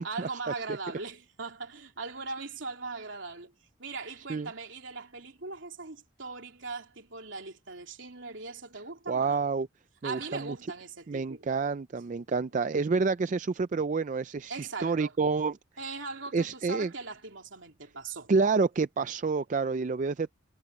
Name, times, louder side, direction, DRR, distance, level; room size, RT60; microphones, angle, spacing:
voice 1, 0.0-3.5 3.8-9.4 10.0-11.5 12.0-12.4 14.5-15.1 15.8-18.3, right 4 dB, 70° right, 3.0 m, -40 dB
voice 2, 9.1-9.7 10.0-10.6 11.1-15.6 16.3-16.9 18.3-20.3, right 4 dB, 40° right, 0.4 m, -28 dB
head